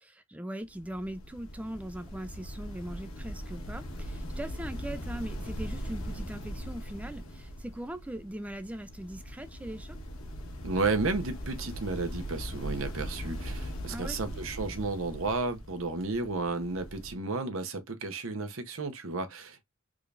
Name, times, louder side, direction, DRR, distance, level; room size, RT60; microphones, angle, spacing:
voice 1, 0.0-10.0 13.9-14.2, right 1 dB, 5° right, 0.3 m, -40 dB
sound 1, 0.6-17.2, equal, 80° left, 1.4 m, -40 dB
voice 2, 10.6-19.6, right 3 dB, 70° right, 0.9 m, -32 dB
3.6 x 3.4 x 2.5 m
head